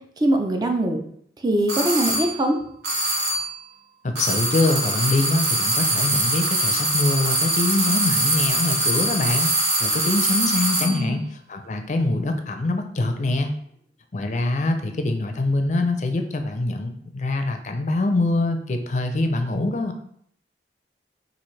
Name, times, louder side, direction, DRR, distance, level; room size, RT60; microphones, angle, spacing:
voice 1, 0.2-1.0 1.4-2.6 10.8-11.2, right 1 dB, 20° right, 4 dB, 0.5 m, -22 dB
sound 1, 1.7-2.4 2.8-3.6 4.2-11.0, right 1 dB, 70° right, 1.2 m, -23 dB
voice 2, 4.0-9.5 9.8-13.5 14.1-19.9, left 2 dB, 40° left, 6 dB, 0.5 m, -24 dB
6.0 x 2.5 x 3.2 m, 0.66 s
head